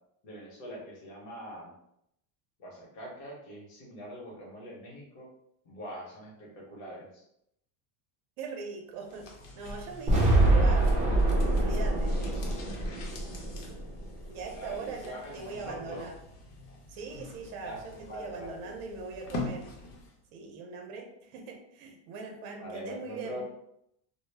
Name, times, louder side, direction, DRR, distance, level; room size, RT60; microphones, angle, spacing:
voice 1, 0.2-1.7 2.6-5.3 5.6-7.2 14.5-16.1 17.6-18.8 22.6-23.4, equal, 40° left, -3 dB, 0.9 m, -43 dB
voice 2, 8.4-9.3 9.6-11.1 11.5-12.2 14.2-16.1 16.9-17.8 18.1-19.7 20.3-23.4, right 4 dB, 55° right, 3 dB, 0.6 m, -41 dB
sound 1, 9.0-20.2 20.5-20.6, left 2 dB, 80° left, 0.8 m, -45 dB
sound 2, 10.1-14.2, right 2 dB, 15° right, 0.6 m, -25 dB
2.1 x 2.0 x 3.2 m, 0.77 s
cardioid pair, 155°, 45 cm